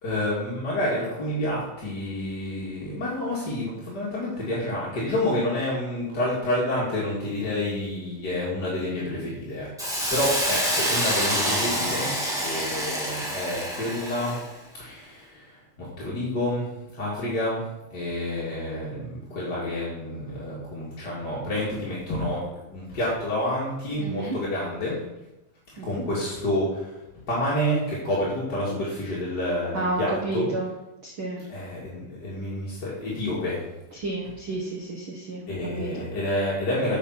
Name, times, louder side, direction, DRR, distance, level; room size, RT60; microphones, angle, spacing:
voice 1, 0.0-12.1 12.4-14.4 14.7-17.6 17.9-22.4 22.7-25.0 25.8-30.5 31.5-33.6 34.2-34.4 35.5-37.0, left 1 dB, 35° left, -7 dB, 2.1 m, -29 dB
Hiss, 9.8-14.5, equal, ahead, 0.9 m, -27 dB
voice 2, 24.0-24.4 25.8-26.0 29.7-30.7 31.0-31.4 33.9-36.1, right 2 dB, 75° right, -1 dB, 1.1 m, -31 dB
8.9 x 6.0 x 5.9 m, 0.95 s
omnidirectional pair, 4.1 m